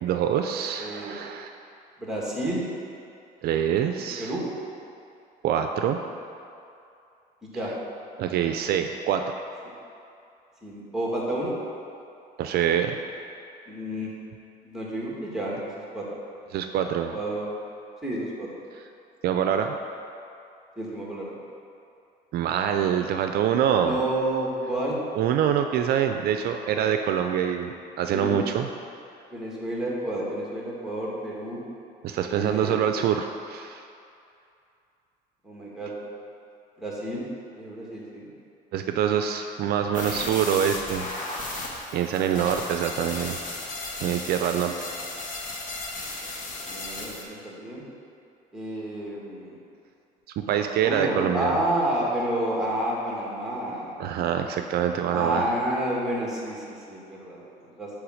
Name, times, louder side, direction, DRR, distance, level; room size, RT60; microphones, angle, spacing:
voice 1, 0.0-1.5 3.4-4.3 5.4-6.0 8.2-9.3 12.4-13.0 16.5-17.2 19.2-19.7 22.3-24.0 25.2-28.7 32.0-33.8 38.7-41.1 41.9-43.4 44.0-44.7 50.4-51.6 54.0-55.4, right 9 dB, 70° right, 6 dB, 0.4 m, -25 dB
voice 2, 0.8-1.2 2.0-2.7 4.2-4.4 7.5-7.7 10.6-11.6 13.7-14.1 14.6-16.0 17.1-17.5 18.0-18.5 20.8-21.3 23.8-25.0 28.1-28.4 29.3-31.6 32.3-32.9 35.4-35.9 36.8-37.3 37.6-38.3 46.6-47.8 48.5-49.6 50.8-53.9 55.1-57.9, right 1 dB, 5° right, -4 dB, 1.8 m, -30 dB
sound 1, 39.9-47.2, left 2 dB, 50° left, 1.2 m, -35 dB
8.1 x 3.4 x 6.3 m, 2.6 s
cardioid pair, 110°, 17 cm